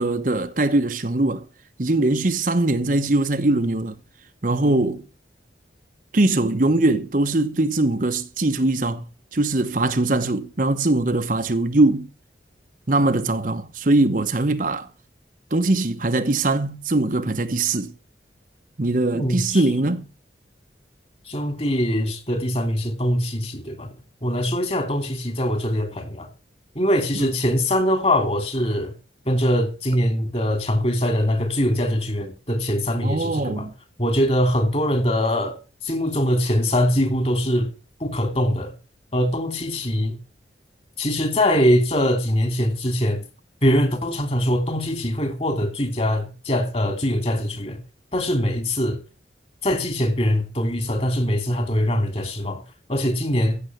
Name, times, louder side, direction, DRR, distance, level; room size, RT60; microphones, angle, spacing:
voice 1, 0.0-1.4 1.8-4.0 4.4-5.0 6.1-9.0 9.3-12.1 12.9-14.9 15.5-17.9 18.8-20.0 27.1-27.2 33.0-33.7, right 2 dB, 45° right, 1.0 m, -21 dB
voice 2, 19.1-19.6 21.3-23.9 24.2-26.3 26.7-28.9 29.3-33.7 34.0-35.6 35.8-37.7 38.0-38.7 39.1-40.2 41.0-43.2 43.6-47.8 48.1-49.0 49.6-52.6 52.9-53.6, equal, 35° left, 2.9 m, -22 dB
15.5 x 7.0 x 6.7 m
head